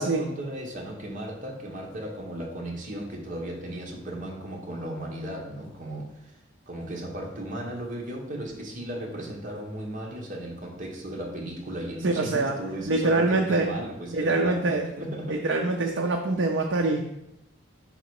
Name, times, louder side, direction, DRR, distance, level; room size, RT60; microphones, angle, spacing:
voice 1, 0.0-6.3 6.7-15.5, right 1 dB, 40° right, -1 dB, 1.2 m, -36 dB
voice 2, 12.0-12.6 12.9-13.7 14.1-14.9 15.3-17.0, right 2 dB, 65° right, 1 dB, 0.5 m, -24 dB
5.1 x 3.9 x 4.7 m, 0.83 s
head